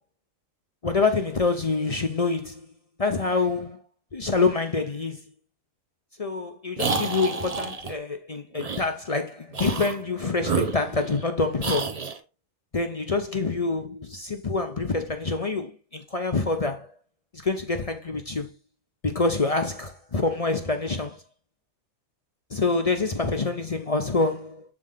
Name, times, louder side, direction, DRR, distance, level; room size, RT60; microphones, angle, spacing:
voice 1, 0.8-2.7 3.0-3.8 4.1-5.2 6.2-12.0 12.7-16.9 17.4-18.5 19.0-21.2 22.5-24.6, left 3 dB, 40° left, 0.6 m, -26 dB
sound 1, 6.8-7.9 8.6-8.8 9.5-10.0 10.4-11.3 11.6-12.2, right 4 dB, 35° right, 0.8 m, -29 dB
7.5 x 3.8 x 3.7 m
omnidirectional pair, 1.4 m